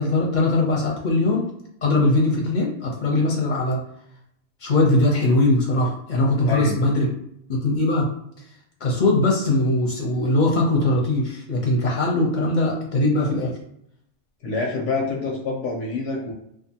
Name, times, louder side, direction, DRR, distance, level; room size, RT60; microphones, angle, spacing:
voice 1, 0.0-1.5 1.8-3.8 4.6-7.1 7.5-8.1 8.8-13.5, left 2 dB, 55° left, -2 dB, 0.6 m, -20 dB
voice 2, 6.5-6.8 14.4-16.3, left 3 dB, 80° left, -1 dB, 0.9 m, -26 dB
2.5 x 2.4 x 2.7 m, 0.76 s
omnidirectional pair, 1.2 m